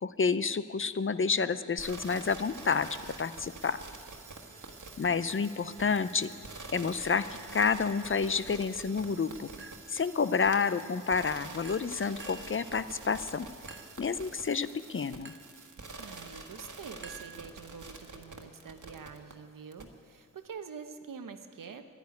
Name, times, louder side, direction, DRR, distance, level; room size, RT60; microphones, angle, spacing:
voice 1, 0.0-2.9 3.2-3.8 5.0-6.3 6.7-7.3 7.5-13.5 14.0-15.3, left 5 dB, 40° left, 13 dB, 0.6 m, -29 dB
sound 1, 1.8-19.3 19.7-19.8, right 3 dB, 65° right, 1.6 m, -47 dB
Chink clink, 9.6-10.1 10.5-11.0 11.6-12.6 13.7-14.1 15.2-15.6 17.0-17.8, right 5 dB, 35° right, 1.0 m, -50 dB
voice 2, 16.0-21.9, right 6 dB, 90° right, 8 dB, 1.0 m, -46 dB
11.0 x 11.0 x 9.6 m, 2.1 s
cardioid pair, 55°, 32 cm